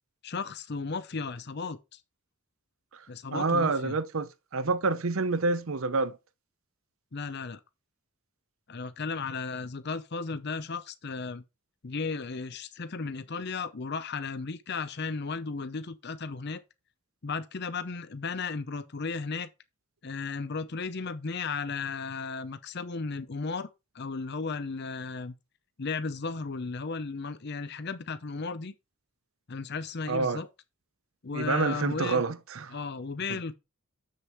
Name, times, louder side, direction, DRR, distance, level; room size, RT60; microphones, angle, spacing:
voice 1, 0.2-2.0 3.1-4.0 7.1-7.6 8.7-11.4 11.8-16.6 17.2-19.5 20.0-23.7 23.9-25.3 25.8-28.7 29.5-30.5 31.2-32.2 32.7-33.5, left 4 dB, 50° left, 0.6 m, -35 dB
voice 2, 3.3-6.2 30.1-30.4 31.3-32.7 33.3-33.4, right 3 dB, 70° right, 0.7 m, -28 dB
7.3 x 6.6 x 4.5 m
head